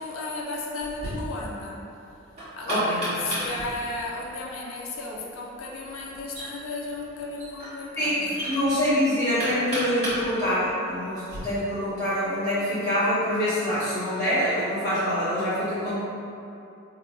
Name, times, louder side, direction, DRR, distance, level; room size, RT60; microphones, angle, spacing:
voice 1, 0.0-1.8 2.5-8.6, left 2 dB, 80° left, -3 dB, 0.5 m, -34 dB
Knock, 0.8-11.4, equal, 35° right, 1.5 m, -36 dB
voice 2, 2.7-3.0 8.0-16.0, equal, 15° left, -12 dB, 1.3 m, -25 dB
3.1 x 2.1 x 4.2 m, 2.7 s
head